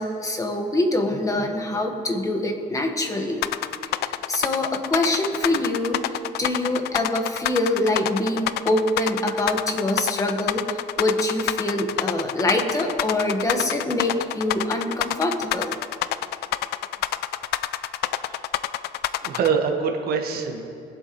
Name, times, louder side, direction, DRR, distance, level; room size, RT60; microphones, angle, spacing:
voice 1, 0.0-3.4 4.1-15.7, left 1 dB, 20° left, 3 dB, 1.4 m, -25 dB
sound 1, 3.4-19.5, left 14 dB, 75° left, 0.4 m, -27 dB
voice 2, 18.1-18.5 19.2-20.6, right 6 dB, 65° right, 3 dB, 1.4 m, -25 dB
21.0 x 7.8 x 3.1 m, 2.6 s
cardioid pair, 110°, 17 cm